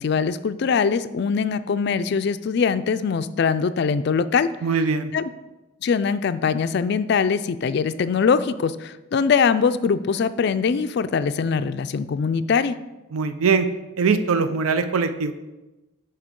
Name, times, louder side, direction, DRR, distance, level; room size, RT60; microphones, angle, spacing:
voice 1, 0.0-4.5 5.1-5.2 5.8-12.8, left 5 dB, 50° left, 13 dB, 0.3 m, -22 dB
voice 2, 4.6-5.1 13.1-13.7 14.0-15.3, right 5 dB, 90° right, 10 dB, 0.5 m, -21 dB
11.0 x 4.5 x 3.7 m, 1.1 s
head